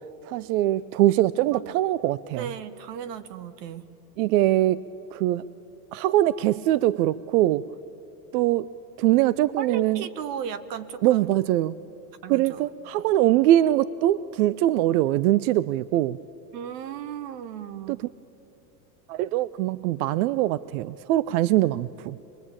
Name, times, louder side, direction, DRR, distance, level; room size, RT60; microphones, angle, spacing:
voice 1, 0.3-2.5 4.2-5.4 5.9-7.6 8.3-8.7 9.0-10.0 11.0-11.8 12.3-16.2 17.9-18.0 19.1-22.2, right 14 dB, 65° right, 18 dB, 0.6 m, -22 dB
voice 2, 2.4-3.9 9.6-11.3 12.2-12.7 16.5-18.1, right 8 dB, 85° right, 14 dB, 1.4 m, -35 dB
25.0 x 20.5 x 8.8 m, 2.9 s
supercardioid pair, 135°, 48 cm